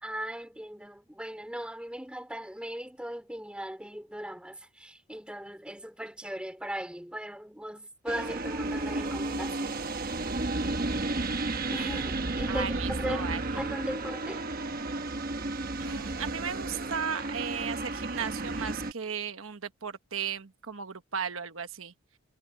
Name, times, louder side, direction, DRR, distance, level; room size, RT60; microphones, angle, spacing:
voice 1, 0.0-10.1 11.7-13.3 13.5-14.4, equal, 5° right, 2.7 m, -38 dB
sound 1, 8.1-18.9, right 2 dB, 45° right, 1.1 m, -32 dB
voice 2, 12.5-13.6 15.8-21.9, right 7 dB, 75° right, 1.2 m, -35 dB
head